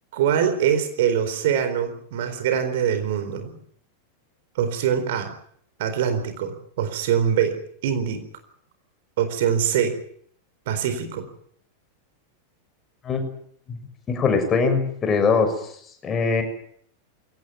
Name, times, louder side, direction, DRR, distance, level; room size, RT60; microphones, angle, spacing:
voice 1, 0.1-3.5 4.5-5.3 5.8-7.6 7.8-8.3 9.2-9.9 10.7-11.3, right 8 dB, 55° right, 8 dB, 4.1 m, -23 dB
voice 2, 14.1-16.4, left 4 dB, 25° left, 6 dB, 6.5 m, -22 dB
23.0 x 18.0 x 9.6 m, 0.64 s
figure-of-eight pair, 90°, 0 cm